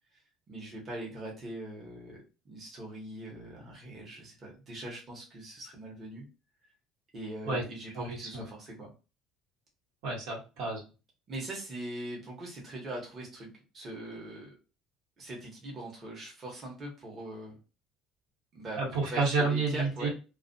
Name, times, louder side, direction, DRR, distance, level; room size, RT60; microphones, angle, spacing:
voice 1, 0.5-2.2 2.4-6.3 7.1-8.9 11.3-14.6 15.2-17.6 18.5-20.1, right 1 dB, 25° right, -3 dB, 0.9 m, -42 dB
voice 2, 7.9-8.4 10.0-10.8 18.8-20.1, right 3 dB, 85° right, -2 dB, 1.1 m, -30 dB
2.4 x 2.1 x 2.6 m, 0.31 s
cardioid pair, 145°, 0 cm